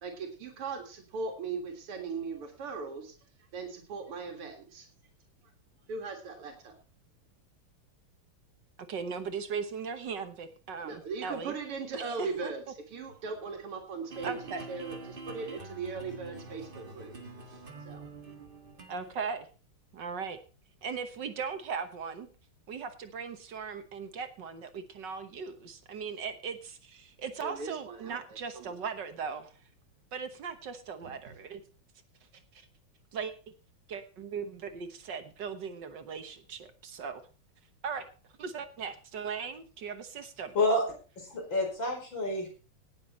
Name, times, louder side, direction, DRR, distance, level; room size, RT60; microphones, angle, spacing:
voice 1, 0.0-3.1 3.5-4.9 5.9-6.7 10.8-14.3 14.7-17.1 17.5-17.6 17.9-18.1 27.4-28.8 31.0-31.3, right 4 dB, 85° right, 3 dB, 2.9 m, -39 dB
voice 2, 8.9-11.5 11.9-12.5 14.2-14.7 18.9-19.5 19.9-20.4 20.8-22.3 22.7-29.5 30.1-31.6 32.5-32.6 33.1-33.3 33.9-37.2 37.8-38.1 38.4-40.6, right 6 dB, 60° right, 9 dB, 1.7 m, -38 dB
sound 1, 14.1-19.1, right 3 dB, 25° right, 1.7 m, -45 dB
voice 3, 41.2-42.5, left 1 dB, 60° left, 1 dB, 5.3 m, -28 dB
18.0 x 7.4 x 4.3 m, 0.36 s
omnidirectional pair, 2.4 m